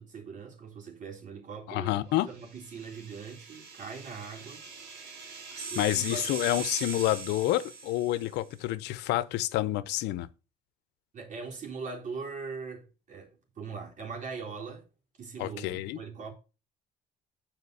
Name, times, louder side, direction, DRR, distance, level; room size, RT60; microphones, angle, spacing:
voice 1, 0.0-2.0 2.3-4.7 5.7-6.4 11.1-14.9 15.2-16.3, right 5 dB, 50° right, 3.6 m, -41 dB
voice 2, 1.7-2.3 5.6-10.3 15.4-16.0, left 15 dB, 85° left, 0.7 m, -29 dB
sound 1, 2.4-8.4, right 5 dB, 85° right, 3.2 m, -41 dB
8.1 x 5.0 x 6.7 m
cardioid pair, 110°, 17 cm